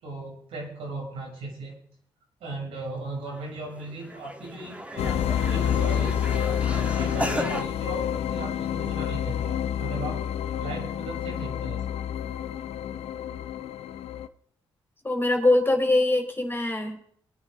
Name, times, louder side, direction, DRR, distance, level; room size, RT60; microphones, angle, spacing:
voice 1, 0.0-1.8 2.4-6.3 6.7-10.2 10.6-11.8, right 2 dB, 85° right, -2 dB, 6.5 m, -37 dB
sound 1, 3.3-3.4 3.7-7.6, right 1 dB, 10° right, 2.2 m, -35 dB
sound 2, 5.0-14.3, left 9 dB, 80° left, 0.7 m, -28 dB
voice 2, 15.0-17.1, left 2 dB, 20° left, 3 dB, 4.1 m, -23 dB
22.0 x 9.9 x 3.9 m, 0.63 s
supercardioid pair, 55°, 10 cm